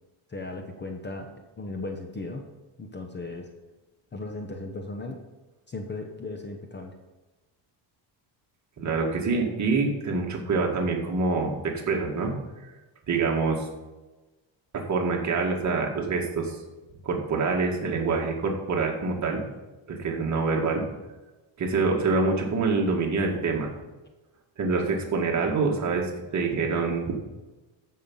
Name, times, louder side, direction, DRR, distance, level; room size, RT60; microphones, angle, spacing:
voice 1, 0.3-2.4 2.8-3.5 4.1-5.2 5.7-6.9, left 2 dB, 20° left, 4 dB, 0.9 m, -36 dB
voice 2, 8.8-12.3 13.1-13.6 14.7-16.6 17.0-19.4 19.9-20.8 21.6-23.7 24.6-26.0 26.3-27.1, right 4 dB, 35° right, 0 dB, 2.1 m, -26 dB
14.0 x 5.9 x 5.5 m, 1.1 s
cardioid pair, 155°, 48 cm